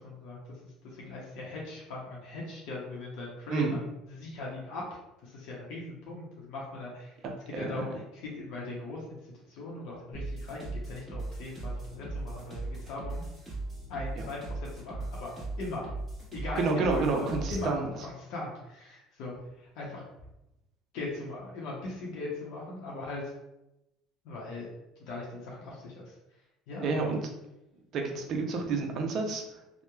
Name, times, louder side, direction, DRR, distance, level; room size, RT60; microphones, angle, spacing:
voice 1, 0.0-7.1 7.5-13.2 13.9-15.9 16.3-20.0 20.9-23.3 24.2-24.7 25.0-26.1 26.7-27.1, left 2 dB, 70° left, -3 dB, 0.6 m, -40 dB
voice 2, 7.5-8.0 14.2-14.3 16.6-17.9 26.8-27.2 27.9-29.4, right 4 dB, 50° right, 2 dB, 0.5 m, -29 dB
sound 1, 10.1-17.7, right 2 dB, 15° right, 1.1 m, -38 dB
2.9 x 2.0 x 2.2 m, 0.91 s
supercardioid pair, 110°, 0 cm